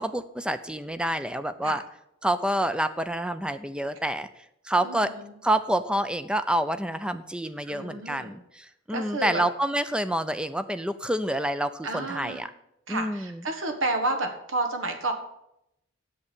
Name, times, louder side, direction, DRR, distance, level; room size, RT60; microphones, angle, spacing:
voice 1, 0.0-1.8 2.2-4.3 4.7-5.1 5.4-12.5 12.9-13.4, right 1 dB, 5° right, 12 dB, 0.5 m, -28 dB
voice 2, 4.8-5.3 7.6-8.3 8.9-9.4 11.8-12.4 12.9-15.1, right 2 dB, 80° right, 6 dB, 1.6 m, -30 dB
8.1 x 7.1 x 8.5 m, 0.80 s
head